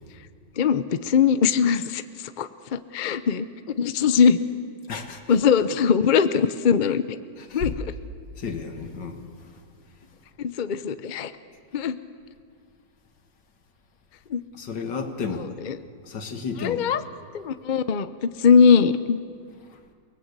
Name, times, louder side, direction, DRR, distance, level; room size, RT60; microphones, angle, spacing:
voice 1, 0.6-2.0 2.4-3.5 3.8-4.4 5.3-7.2 7.5-7.9 10.4-11.3 11.7-12.0 14.3-14.4 15.7-15.8 16.6-17.0 17.3-19.2, left 6 dB, 55° left, 12 dB, 0.5 m, -21 dB
voice 2, 4.9-5.2 7.4-7.8 8.4-9.2 9.5-9.6 14.5-15.5 16.0-16.9, left 5 dB, 75° left, 6 dB, 2.4 m, -32 dB
28.5 x 19.5 x 8.2 m, 2.2 s
omnidirectional pair, 1.9 m